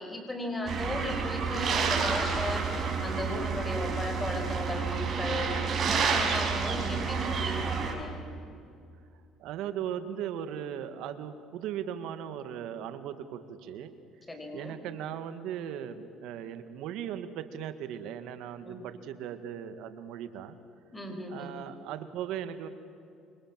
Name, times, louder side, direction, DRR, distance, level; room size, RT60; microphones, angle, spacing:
voice 1, 0.0-5.5 5.8-8.1 14.3-14.8 18.6-18.8 20.9-21.5, left 1 dB, 15° left, 4 dB, 5.8 m, -36 dB
sound 1, 0.7-7.9, right 5 dB, 45° right, 6.0 m, -29 dB
voice 2, 9.4-13.9 14.5-20.6 21.3-22.7, right 9 dB, 75° right, 10 dB, 1.9 m, -38 dB
27.0 x 25.5 x 7.5 m, 2.5 s
cardioid pair, 100°, 0 cm